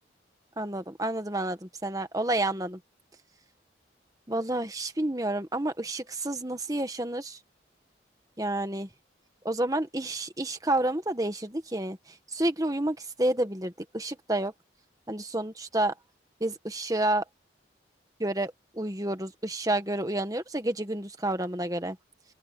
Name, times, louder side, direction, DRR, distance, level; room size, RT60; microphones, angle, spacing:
voice 1, 0.6-2.8 4.3-7.4 8.4-8.9 9.4-12.0 12.3-14.5 15.1-15.9 16.4-17.2 18.2-22.0, right 1 dB, 20° right, 1.6 m, -29 dB
open air
head